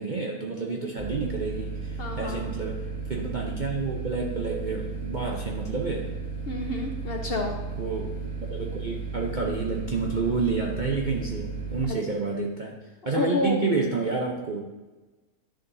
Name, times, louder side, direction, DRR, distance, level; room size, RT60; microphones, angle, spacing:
voice 1, 0.0-2.8 3.1-6.1 7.8-8.1 8.5-12.8 13.1-14.6, right 4 dB, 45° right, -1 dB, 0.6 m, -29 dB
sound 1, 1.0-11.9, right 4 dB, 75° right, 2.6 m, -34 dB
voice 2, 2.0-2.4 6.5-7.5 11.9-12.0 13.1-13.7, left 2 dB, 50° left, 2 dB, 0.8 m, -29 dB
11.0 x 6.9 x 2.7 m, 1.2 s
omnidirectional pair, 1.6 m